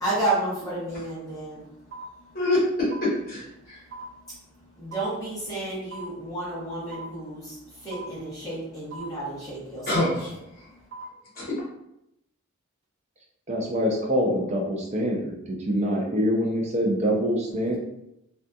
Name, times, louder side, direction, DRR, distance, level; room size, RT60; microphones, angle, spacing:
voice 1, 0.0-2.3 3.6-10.0 10.5-10.9, right 2 dB, 15° left, -10 dB, 0.8 m, -32 dB
sound 1, 1.9-2.0 2.9-3.0 3.9-4.0 4.9-5.0 5.9-6.0 6.9-7.0 7.9-8.0 8.9-9.0 9.9-10.0 10.9-11.0, right 5 dB, 55° right, 1.0 m, -39 dB
voice 2, 3.0-3.8 9.9-10.7 11.3-11.5, left 2 dB, 45° left, -7 dB, 1.1 m, -26 dB
voice 3, 13.5-17.8, equal, 30° right, 0 dB, 0.5 m, -25 dB
2.7 x 2.4 x 2.3 m, 0.81 s
head